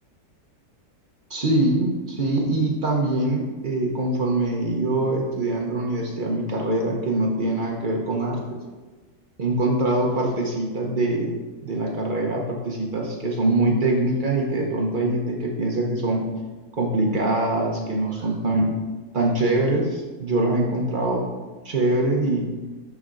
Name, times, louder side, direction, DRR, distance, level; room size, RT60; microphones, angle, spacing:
voice 1, 1.3-8.6 9.4-11.3 11.6-16.3 16.8-18.7 19.1-21.3 21.6-22.5, right 2 dB, 45° right, 0 dB, 0.6 m, -23 dB
12.0 x 4.2 x 2.5 m, 1.3 s
omnidirectional pair, 1.8 m